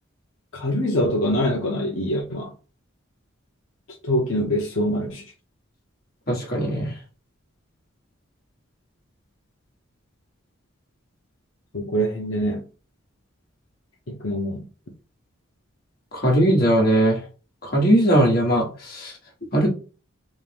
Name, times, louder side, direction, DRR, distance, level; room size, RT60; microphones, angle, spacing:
voice 1, 0.5-2.5 4.0-5.3 11.7-12.6 14.1-14.7, equal, 75° left, 0.8 m, -24 dB
voice 2, 6.3-6.9 16.1-17.2 17.6-19.1 19.5-19.7, right 1 dB, 45° left, 1.5 m, -19 dB
3.6 x 2.6 x 3.4 m
head